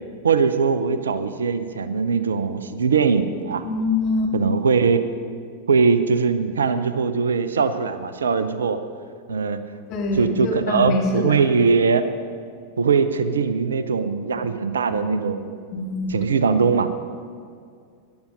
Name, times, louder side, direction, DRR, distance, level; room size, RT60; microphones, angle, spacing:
voice 1, 0.2-3.7 4.3-5.0 5.7-8.8 9.3-9.6 10.2-12.0 12.8-15.5 16.1-16.9, right 5 dB, 70° right, 12 dB, 0.6 m, -21 dB
voice 2, 3.6-4.3 9.9-11.4 14.9-15.2 15.7-16.1, left 2 dB, 40° left, -1 dB, 2.6 m, -24 dB
14.0 x 10.5 x 5.4 m, 2.2 s
figure-of-eight pair, 90°, 0 cm